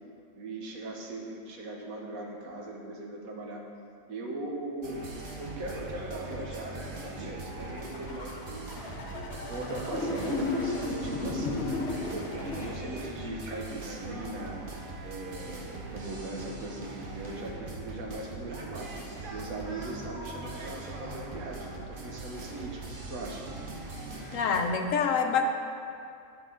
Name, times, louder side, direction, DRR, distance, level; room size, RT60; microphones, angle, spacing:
voice 1, 0.3-3.6 4.1-5.1 5.4-8.9 9.5-11.7 12.0-12.2 12.5-14.6 15.0-18.9 19.3-22.8 23.1-23.4, right 2 dB, 80° right, 0 dB, 1.5 m, -39 dB
sound 1, 4.8-24.6, right 2 dB, 45° right, 1.0 m, -41 dB
sound 2, 7.5-12.7, left 2 dB, 50° left, 1.2 m, -34 dB
voice 2, 24.3-25.4, left 6 dB, 70° left, 5 dB, 1.0 m, -26 dB
10.5 x 5.7 x 3.8 m, 2.5 s
omnidirectional pair, 1.5 m